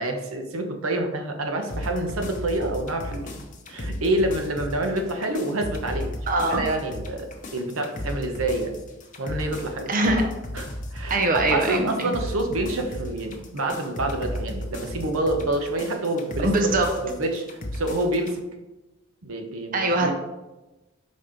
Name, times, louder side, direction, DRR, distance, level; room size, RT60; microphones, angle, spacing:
voice 1, 0.0-3.3 3.7-6.1 6.5-7.3 7.5-8.8 9.2-9.9 10.5-11.2 11.5-16.5 17.0-17.4 17.7-18.4 19.2-20.1, right 1 dB, 85° right, 4 dB, 1.0 m, -27 dB
sound 1, 1.7-18.4, left 1 dB, 40° left, 0.8 m, -35 dB
voice 2, 6.3-6.6 9.9-10.3 11.1-12.1 16.4-17.0 19.7-20.1, right 2 dB, 40° right, 4 dB, 0.6 m, -22 dB
5.5 x 4.2 x 5.0 m, 1.0 s
head